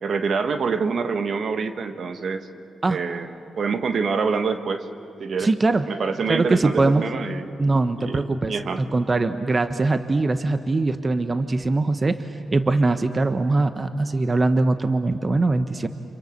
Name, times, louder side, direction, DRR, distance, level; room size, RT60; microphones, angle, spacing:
voice 1, 0.0-2.5 2.9-4.9 5.2-5.5 5.9-7.5 8.0-8.8, right 5 dB, 65° right, 8 dB, 1.4 m, -26 dB
voice 2, 5.4-5.9 6.3-7.1 7.6-15.9, right 3 dB, 35° right, 10 dB, 1.1 m, -22 dB
29.5 x 26.0 x 6.7 m, 2.6 s
supercardioid pair, 50°, 0 cm